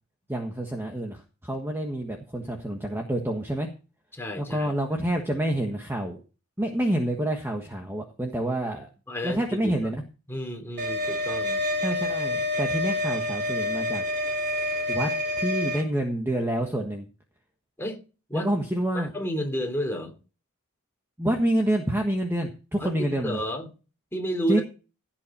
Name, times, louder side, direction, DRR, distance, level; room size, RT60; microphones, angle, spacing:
voice 1, 0.3-3.7 4.4-6.2 6.6-8.9 9.2-10.0 11.8-14.0 14.9-15.1 15.4-17.1 18.3-19.1 21.2-23.4 24.5-24.6, right 1 dB, 10° right, 1.4 m, -27 dB
voice 2, 4.1-4.7 9.1-9.8 10.3-11.6 17.8-18.0 18.3-18.5 18.9-20.1 22.8-23.7 24.1-24.6, equal, 10° left, 3.1 m, -31 dB
sound 1, 10.8-15.8, left 1 dB, 50° right, 3.0 m, -28 dB
16.5 x 7.4 x 4.4 m
head